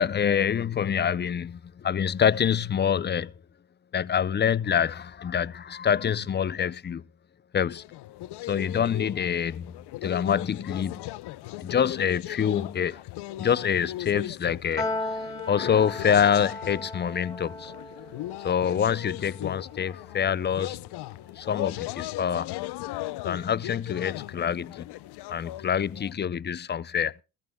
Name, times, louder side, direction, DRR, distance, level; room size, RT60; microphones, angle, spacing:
voice 1, 0.0-3.3 3.9-7.0 7.5-7.8 8.5-9.7 10.0-11.0 11.6-13.0 13.4-15.1 15.5-17.7 18.4-20.8 21.4-22.5 23.2-24.9 25.3-27.2, left 8 dB, 25° left, 0.5 m, -26 dB
sound 1, 7.7-26.1, left 16 dB, 70° left, 0.7 m, -38 dB
Piano, 14.8-21.3, left 2 dB, 10° left, 2.3 m, -37 dB
19.0 x 14.5 x 2.2 m
supercardioid pair, 85°, 42 cm